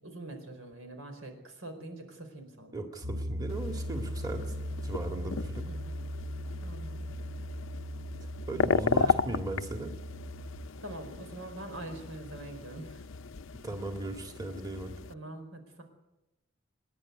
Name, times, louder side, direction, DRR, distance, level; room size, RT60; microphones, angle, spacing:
voice 1, 0.0-2.8 4.5-4.6 5.7-5.9 6.6-7.1 8.9-9.2 10.8-13.0 15.1-15.8, right 1 dB, 85° right, 5 dB, 4.7 m, -44 dB
voice 2, 2.7-4.5 4.8-5.7 8.5-9.9 13.6-14.9, right 1 dB, 20° right, 4 dB, 1.9 m, -37 dB
Piano, 3.0-10.7, equal, 50° right, 0.9 m, -38 dB
sound 1, 3.5-15.1, left 5 dB, 70° left, 0.6 m, -35 dB
26.5 x 10.5 x 9.5 m, 0.98 s
head